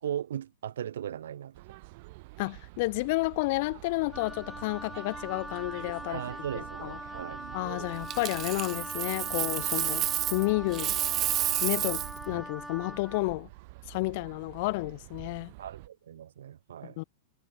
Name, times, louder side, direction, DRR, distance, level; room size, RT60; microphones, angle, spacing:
voice 1, 0.0-1.6 6.1-7.4 15.6-17.0, right 10 dB, 85° right, 1.9 m, -37 dB
sound 1, 1.5-15.9, right 24 dB, 40° right, 7.4 m, -47 dB
voice 2, 2.4-6.2 6.8-7.0 7.5-10.0 10.3-10.9 11.6-13.5 13.9-15.5 16.8-17.0, left 24 dB, 40° left, 0.7 m, -31 dB
Wind instrument woodwind instrument, 4.1-13.3, right 1 dB, ahead, 1.1 m, -42 dB
Coin (dropping), 8.1-10.5 10.7-12.2 15.0-15.2, right 12 dB, 20° right, 0.9 m, -30 dB
supercardioid pair, 175°, 0 cm